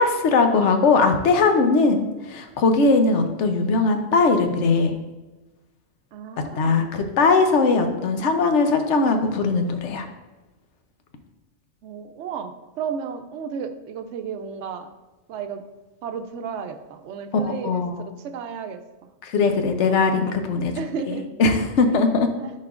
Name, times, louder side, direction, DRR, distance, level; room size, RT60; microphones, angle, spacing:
voice 1, 0.0-5.0 6.6-10.1 17.3-18.0 19.2-20.7 21.1-22.3, left 3 dB, 85° left, 6 dB, 1.0 m, -20 dB
voice 2, 6.1-6.9 11.8-14.9 15.3-15.6 16.0-18.8 20.8-21.3 22.4-22.5, right 6 dB, 85° right, 8 dB, 0.9 m, -33 dB
10.5 x 4.3 x 2.4 m, 1.1 s
omnidirectional pair, 1.2 m